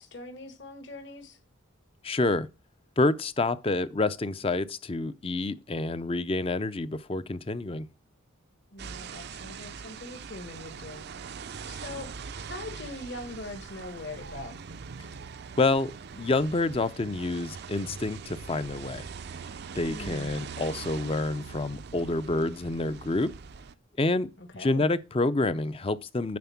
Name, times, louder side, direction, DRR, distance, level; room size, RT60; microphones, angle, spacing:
voice 1, 0.0-1.4 8.7-11.4 11.6-12.1 12.5-14.6 19.9-20.3 24.4-24.9, left 2 dB, 55° left, 1.6 m, -42 dB
voice 2, 2.0-2.5 3.0-7.9 15.6-19.0 19.8-23.3 24.0-24.3 24.6-26.4, left 2 dB, 25° left, 0.5 m, -28 dB
sound 1, 8.8-23.7, right 5 dB, 50° right, 0.5 m, -42 dB
9.4 x 4.3 x 7.1 m
head